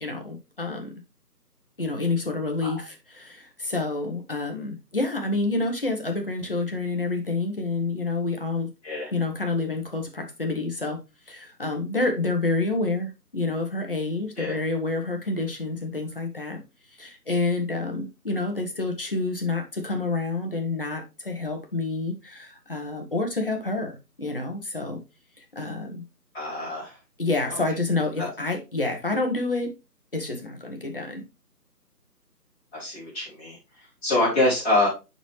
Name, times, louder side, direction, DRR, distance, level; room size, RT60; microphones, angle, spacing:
voice 1, 0.0-0.9 1.8-8.7 9.1-11.0 11.3-16.6 17.0-25.0 25.4-26.0 27.2-29.7 30.1-31.2, left 3 dB, 35° left, 1.2 m, -28 dB
voice 2, 26.3-27.0 27.5-27.6 28.2-28.3 32.7-34.9, left 2 dB, 5° left, 2.1 m, -26 dB
9.7 x 4.1 x 3.1 m
figure-of-eight pair, 165°, 49 cm